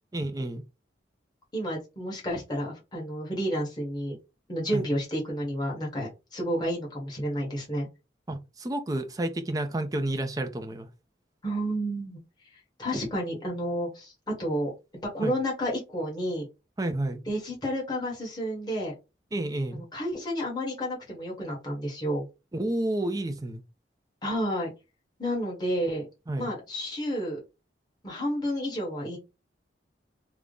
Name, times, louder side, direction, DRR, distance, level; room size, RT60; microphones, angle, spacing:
voice 1, 0.1-0.6 4.7-4.9 8.3-10.9 15.2-15.3 16.8-17.2 19.3-19.8 22.5-23.6 26.3-26.5, right 1 dB, 20° right, 0.4 m, -30 dB
voice 2, 1.5-4.2 4.5-7.9 11.4-12.2 12.8-14.7 15.1-16.5 17.3-18.9 19.7-22.3 24.2-24.7 25.2-26.1 26.4-27.4 28.0-29.2, equal, 25° left, 1.2 m, -30 dB
3.5 x 2.1 x 3.7 m
head